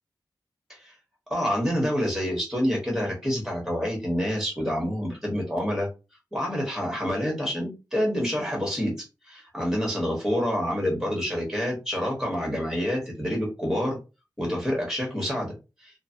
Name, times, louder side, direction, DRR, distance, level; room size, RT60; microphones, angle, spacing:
voice 1, 1.3-5.9 6.3-8.9 9.3-14.0 14.4-15.5 15.8-15.9, equal, 5° right, -1 dB, 1.3 m, -27 dB
3.1 x 2.1 x 2.7 m, 0.29 s
wide cardioid pair, 70°, 8 cm